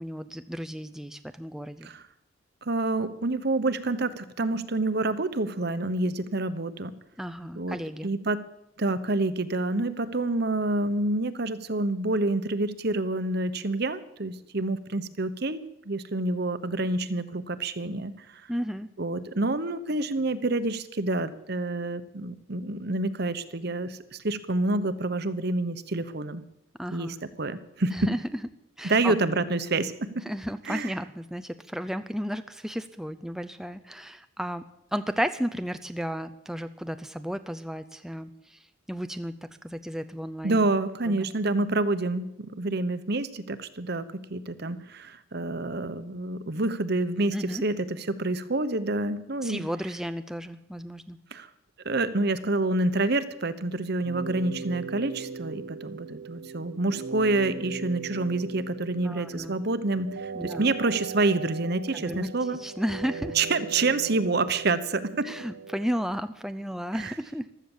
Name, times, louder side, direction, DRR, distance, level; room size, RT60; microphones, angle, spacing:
voice 1, 0.0-1.9 7.2-8.1 18.5-18.9 26.8-27.2 27.9-28.4 28.8-29.1 30.2-39.4 39.6-40.7 41.0-41.3 47.3-47.6 49.4-51.2 59.0-59.5 60.3-60.7 61.9-62.3 62.6-63.4 65.2-67.6, equal, ahead, 10 dB, 0.5 m, -33 dB
voice 2, 2.6-6.9 7.6-7.8 8.0-8.4 8.8-18.4 19.0-26.4 26.9-28.1 28.8-30.2 30.7-30.9 40.4-49.6 51.3-51.5 51.8-62.6 63.3-65.3 67.0-67.1, right 2 dB, 55° right, 13 dB, 1.1 m, -28 dB
sound 1, 54.0-66.0, right 5 dB, 80° right, 0.9 m, -39 dB
15.0 x 13.0 x 7.3 m, 0.82 s
head